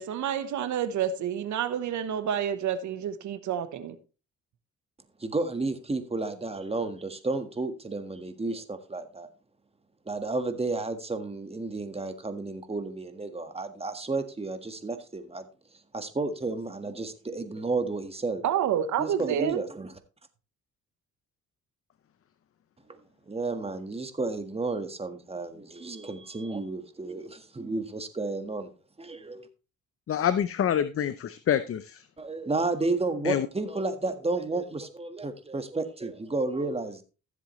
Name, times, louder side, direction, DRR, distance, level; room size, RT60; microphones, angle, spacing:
voice 1, 0.0-4.0 18.4-19.6, right 9 dB, 75° right, 1.1 m, -29 dB
voice 2, 5.2-9.3 10.0-15.5 15.9-18.4 19.0-19.9 22.9-23.0 23.3-28.7 29.0-29.5 32.2-37.0, right 3 dB, 20° right, 1.5 m, -32 dB
voice 3, 30.1-32.0 33.2-33.5, left 9 dB, 50° left, 0.7 m, -26 dB
15.0 x 7.5 x 3.1 m
cardioid pair, 90°, 30 cm